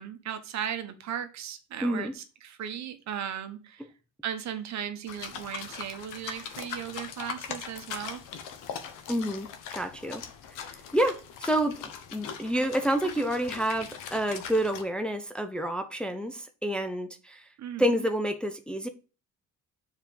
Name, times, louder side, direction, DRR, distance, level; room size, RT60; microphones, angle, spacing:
voice 1, 0.0-3.9 4.2-8.2 17.6-18.1, right 9 dB, 60° right, 1.2 m, -37 dB
voice 2, 1.8-2.1 9.1-10.2 10.5-10.6 10.9-11.8 12.1-17.5 17.8-18.9, right 1 dB, 5° left, 0.6 m, -28 dB
sound 1, 5.1-14.8, left 7 dB, 85° left, 1.2 m, -41 dB
7.2 x 4.6 x 5.3 m
cardioid pair, 140°, 31 cm